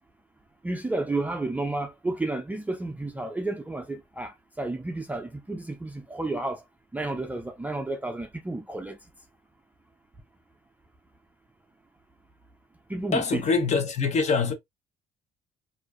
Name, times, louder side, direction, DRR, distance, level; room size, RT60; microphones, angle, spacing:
voice 1, 0.6-6.6 6.9-9.0 12.9-13.4, right 2 dB, 10° right, 0.4 m, -31 dB
voice 2, 13.1-14.5, left 5 dB, 40° left, 0.7 m, -24 dB
2.4 x 2.2 x 2.2 m
cardioid pair, 110°, 17 cm